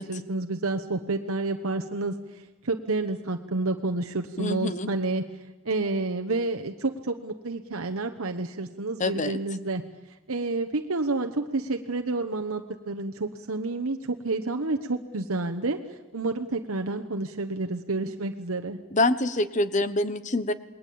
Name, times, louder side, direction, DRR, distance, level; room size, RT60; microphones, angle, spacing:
voice 1, 0.0-5.2 5.6-9.8 10.1-18.8, right 2 dB, 70° right, 6 dB, 1.1 m, -29 dB
voice 2, 4.4-4.9 9.0-9.4 18.9-20.5, left 2 dB, 35° left, 14 dB, 1.1 m, -25 dB
28.0 x 21.0 x 8.6 m, 1.1 s
head